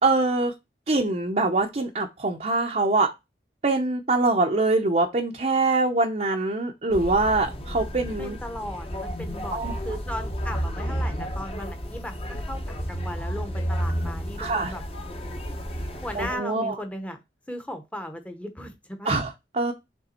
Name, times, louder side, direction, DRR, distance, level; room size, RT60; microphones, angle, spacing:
voice 1, 0.0-0.5 0.9-3.1 3.6-8.4 9.5-9.8 14.4-14.7 16.1-16.7 19.0-19.7, right 2 dB, 40° right, 0.7 m, -24 dB
sound 1, 6.9-16.3, equal, 35° left, 1.0 m, -32 dB
voice 2, 8.2-12.6 12.9-14.8 16.0-17.2 17.5-19.2, equal, 10° left, 0.9 m, -36 dB
6.8 x 3.5 x 4.3 m
head